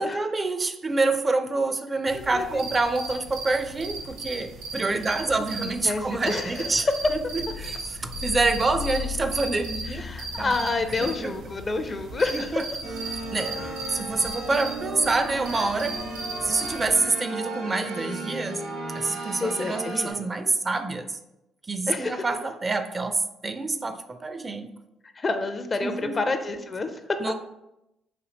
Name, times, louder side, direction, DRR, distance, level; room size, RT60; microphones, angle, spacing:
voice 1, 0.0-6.9 7.1-10.1 10.4-10.7 11.0-11.3 12.3-12.6 13.3-16.0 16.4-18.6 18.9-21.2 21.7-24.7 25.8-26.2 27.2-27.3, right 3 dB, 30° right, 9 dB, 0.4 m, -27 dB
voice 2, 2.1-2.7 5.6-6.9 9.9-12.6 19.4-20.3 21.9-22.2 25.2-27.0, left 3 dB, 35° left, 7 dB, 0.4 m, -29 dB
sound 1, 2.1-16.9, right 3 dB, 65° right, 0.7 m, -37 dB
sound 2, 7.0-13.7, left 9 dB, 75° left, 1.0 m, -39 dB
sound 3, 12.8-20.1, right 2 dB, 90° right, 1.4 m, -35 dB
4.2 x 2.6 x 2.9 m, 0.88 s
hypercardioid pair, 55°, 0 cm